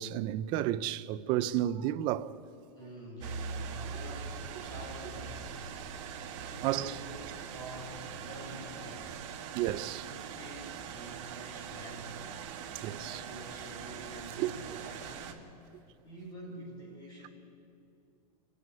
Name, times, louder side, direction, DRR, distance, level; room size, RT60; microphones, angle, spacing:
voice 1, 0.0-2.3 6.6-6.9 9.5-10.1 12.5-13.2 14.4-14.8, right 13 dB, 25° right, 0.4 m, -32 dB
voice 2, 2.8-5.8 6.5-9.3 10.3-12.3 12.9-17.3, equal, 20° left, 4.0 m, -47 dB
sound 1, 3.2-15.3, right 6 dB, 45° right, 1.7 m, -42 dB
29.0 x 9.8 x 9.8 m
supercardioid pair, 165°, 21 cm